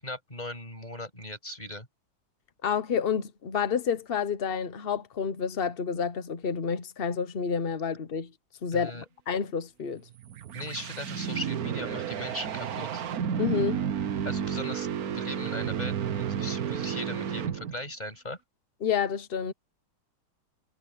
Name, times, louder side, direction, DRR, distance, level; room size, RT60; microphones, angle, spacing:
voice 1, 0.0-1.9 8.7-9.0 10.5-13.0 14.2-18.4, left 1 dB, 20° left, 7.9 m, -38 dB
voice 2, 2.6-8.3 8.6-10.0 13.4-13.8 18.8-19.5, left 6 dB, 65° left, 0.5 m, -29 dB
sound 1, 10.1-17.9, right 8 dB, 55° right, 1.2 m, -32 dB
omnidirectional pair, 2.3 m